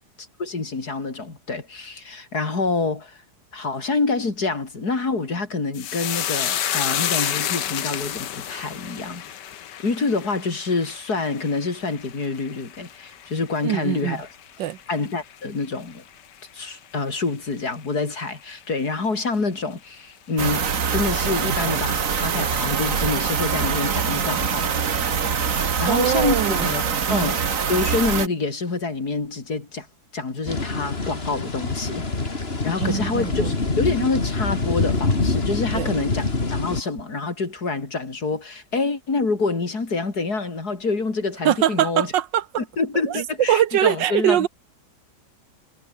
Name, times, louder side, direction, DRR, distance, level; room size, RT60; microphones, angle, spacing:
voice 1, 0.4-3.2 3.5-9.2 9.8-14.3 14.9-16.0 16.5-24.8 25.2-27.4 27.7-29.9 30.1-32.1 32.6-42.1 42.6-44.5, left 3 dB, 60° left, 4.1 m, -27 dB
sound 1, 5.7-14.4 14.7-15.3 15.6-15.8, left 10 dB, 75° left, 1.7 m, -30 dB
voice 2, 13.6-14.2 14.6-14.8 25.9-26.7 27.1-27.3 32.8-33.5 35.7-35.9 41.4-42.4 43.1-44.5, right 11 dB, 90° right, 1.6 m, -22 dB
sound 2, 20.4-28.3, right 6 dB, 50° right, 1.9 m, -24 dB
sound 3, 30.5-36.8, left 3 dB, 35° left, 3.0 m, -25 dB
omnidirectional pair, 1.9 m